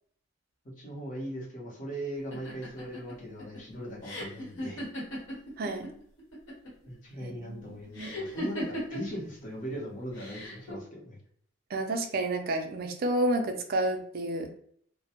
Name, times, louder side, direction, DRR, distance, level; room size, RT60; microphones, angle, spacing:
voice 1, 0.8-4.8 6.9-11.2, equal, 40° left, -3 dB, 0.8 m, -39 dB
sound 1, 2.3-5.9 6.2-6.8 7.9-9.2 10.1-10.7, equal, 65° left, 1.0 m, -37 dB
voice 2, 5.6-5.9 7.2-8.1 11.7-14.5, right 1 dB, 45° right, 4 dB, 0.4 m, -30 dB
2.1 x 2.1 x 2.8 m, 0.63 s
head